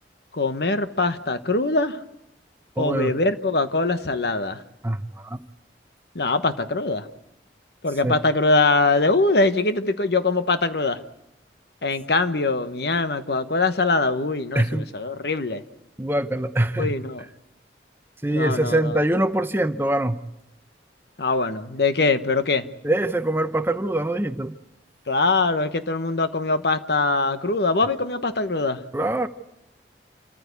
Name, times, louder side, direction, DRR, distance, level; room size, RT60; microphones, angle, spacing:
voice 1, 0.3-2.0 2.8-4.6 6.1-7.1 7.8-11.0 11.8-15.6 16.8-17.2 18.3-18.9 21.2-22.6 25.1-28.8, left 3 dB, 65° left, 10 dB, 1.1 m, -22 dB
voice 2, 2.8-3.2 4.8-5.4 8.0-8.2 14.5-14.9 16.0-16.9 18.2-20.2 22.8-24.5 28.9-29.3, right 1 dB, 10° right, 10 dB, 0.7 m, -23 dB
27.5 x 14.5 x 8.2 m, 0.84 s
head